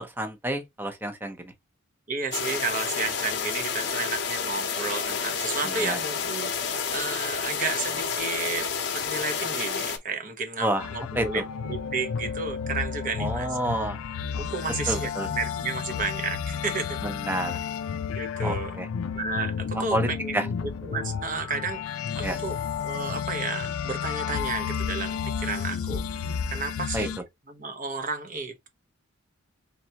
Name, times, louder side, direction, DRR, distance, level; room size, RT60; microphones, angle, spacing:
voice 1, 0.0-1.4 5.8-6.0 10.6-10.8 11.2-11.3 13.2-14.0 14.9-15.3 17.3-17.6 18.4-18.9 19.7-20.1 20.3-20.4 22.2-22.4 26.9-27.1, right 1 dB, 10° right, 0.7 m, -28 dB
voice 2, 2.1-8.7 8.9-13.6 14.4-17.0 18.1-18.8 19.1-27.2 27.5-28.7, right 4 dB, 40° right, 1.0 m, -32 dB
sound 1, 2.3-10.0, left 6 dB, 55° left, 0.8 m, -30 dB
sound 2, 10.8-27.2, left 7 dB, 85° left, 0.4 m, -32 dB
4.0 x 3.3 x 2.9 m
head